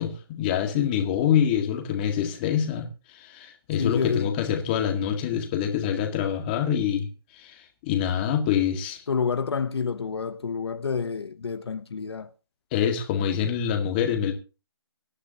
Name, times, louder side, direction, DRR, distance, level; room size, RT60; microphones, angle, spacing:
voice 1, 0.0-7.1 7.3-9.0 12.7-14.3, left 9 dB, 20° left, 1.9 m, -26 dB
voice 2, 3.8-4.3 9.1-12.3, left 5 dB, 70° left, 1.0 m, -28 dB
24.0 x 9.8 x 2.9 m
hypercardioid pair, 160°, 14 cm